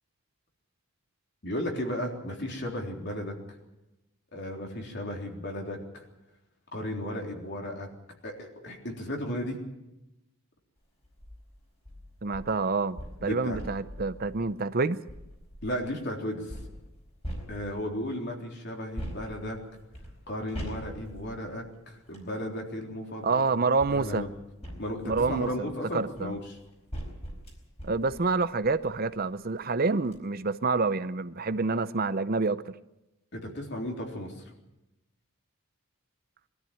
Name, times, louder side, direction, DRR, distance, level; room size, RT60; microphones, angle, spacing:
voice 1, 1.4-3.4 4.3-6.1 6.7-7.9 8.2-9.6 13.2-13.6 15.6-16.6 17.5-19.6 20.3-23.4 23.9-24.3 24.8-26.4 33.3-34.4, equal, 50° left, 1 dB, 3.6 m, -35 dB
sound 1, 11.0-11.4 11.9-15.9 16.5-18.1 19.0-22.3 23.3-29.2 29.6-29.7 30.0-30.2, equal, 30° left, 4.6 m, -43 dB
voice 2, 12.2-15.0 23.2-24.2 25.1-26.4 27.8-32.8, right 4 dB, 40° right, 12 dB, 0.6 m, -28 dB
22.5 x 13.5 x 9.3 m, 0.94 s
head